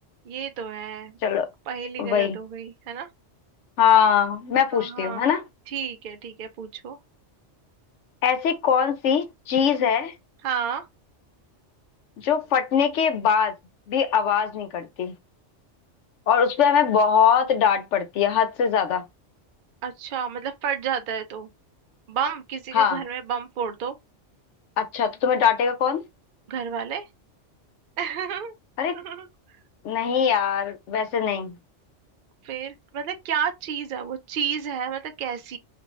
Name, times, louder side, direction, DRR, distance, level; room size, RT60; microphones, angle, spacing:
voice 1, 0.3-1.2 1.7-3.1 4.7-5.3 5.7-7.0 10.4-10.9 19.8-21.5 22.1-23.9 26.5-27.1 28.0-28.5 28.9-29.3 32.4-35.6, right 7 dB, 60° right, 0.6 m, -31 dB
voice 2, 2.0-2.4 3.8-5.4 8.2-10.1 12.2-13.5 13.9-15.1 16.3-19.0 22.7-23.0 24.8-26.0 28.8-29.0 29.8-31.6, left 7 dB, 80° left, 1.0 m, -22 dB
2.6 x 2.3 x 3.0 m
omnidirectional pair, 1.2 m